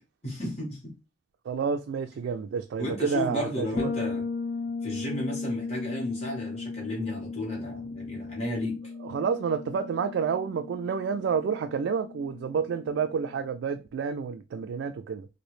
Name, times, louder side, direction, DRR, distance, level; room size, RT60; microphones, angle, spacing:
voice 1, 0.2-0.9 2.8-4.3 4.8-8.8, left 1 dB, 35° left, 1.4 m, -33 dB
voice 2, 1.5-3.9 9.0-15.3, right 6 dB, 85° right, 0.3 m, -29 dB
Bass guitar, 3.8-13.4, left 4 dB, 80° left, 0.6 m, -36 dB
3.0 x 2.6 x 3.1 m
head